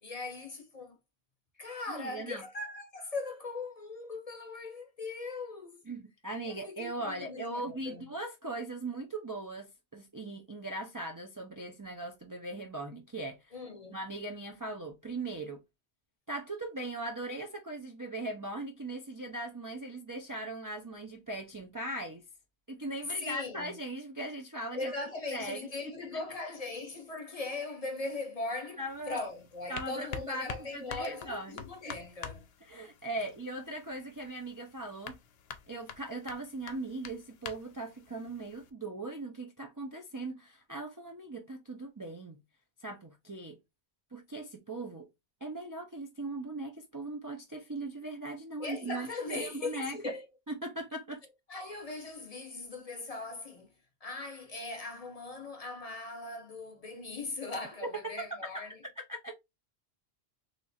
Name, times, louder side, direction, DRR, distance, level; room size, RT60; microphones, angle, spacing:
voice 1, 0.0-1.0 1.6-5.8 6.5-8.1 13.5-14.0 23.1-23.8 24.7-32.5 48.6-50.3 51.5-53.7 54.0-58.8, left 3 dB, 40° left, 0.7 m, -39 dB
voice 2, 1.9-2.4 5.9-13.6 13.9-15.6 16.3-22.2 22.7-24.9 25.3-25.7 28.8-29.2 29.7-32.0 32.7-35.2 35.7-42.4 42.8-43.6 44.1-45.1 45.4-50.1 50.5-51.2 58.0-58.3 58.5-58.6 59.1-59.4, right 2 dB, 30° right, 0.4 m, -39 dB
sound 1, 28.9-38.7, left 7 dB, 70° left, 0.8 m, -47 dB
3.3 x 2.4 x 4.0 m
omnidirectional pair, 1.1 m